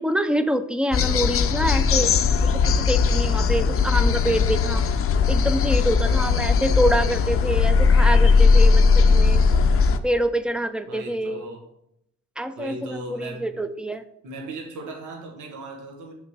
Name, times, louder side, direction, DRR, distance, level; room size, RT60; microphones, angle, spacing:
voice 1, 0.0-2.1 2.4-4.9 5.3-9.4 10.0-11.4 12.4-14.0, right 1 dB, 5° right, 10 dB, 0.5 m, -26 dB
sound 1, 0.9-10.0, left 5 dB, 45° left, 0.6 m, -18 dB
voice 2, 10.9-11.6 12.6-13.5 14.2-16.1, right 1 dB, 80° right, 1 dB, 1.4 m, -37 dB
5.8 x 3.7 x 6.0 m, 0.77 s
cardioid pair, 90°, 30 cm